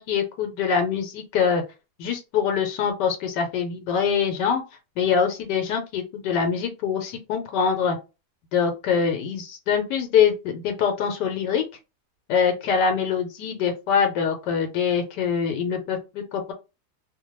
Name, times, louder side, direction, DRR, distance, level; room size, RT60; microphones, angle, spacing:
voice 1, 0.0-1.6 2.0-4.6 5.0-8.0 8.5-11.6 12.3-16.5, left 7 dB, 85° left, 4 dB, 1.3 m, -24 dB
2.8 x 2.2 x 3.0 m, 0.27 s
omnidirectional pair, 1.8 m